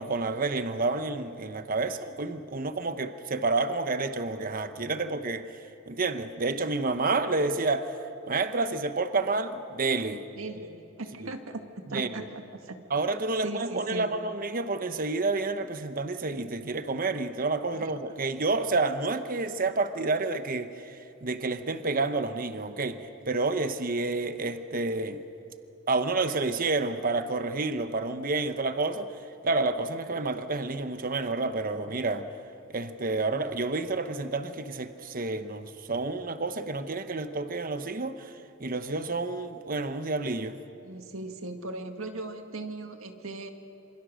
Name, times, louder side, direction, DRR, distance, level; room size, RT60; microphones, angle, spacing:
voice 1, 0.0-5.5 5.9-8.0 8.3-10.2 11.2-11.3 11.9-12.1 12.9-25.2 25.9-29.1 29.4-32.3 32.7-40.6, right 3 dB, 45° right, 1.0 m, -29 dB
voice 2, 10.4-12.8 13.4-14.1 17.8-17.9 40.8-43.5, right 2 dB, 80° right, 1.9 m, -38 dB
27.0 x 26.5 x 6.4 m
head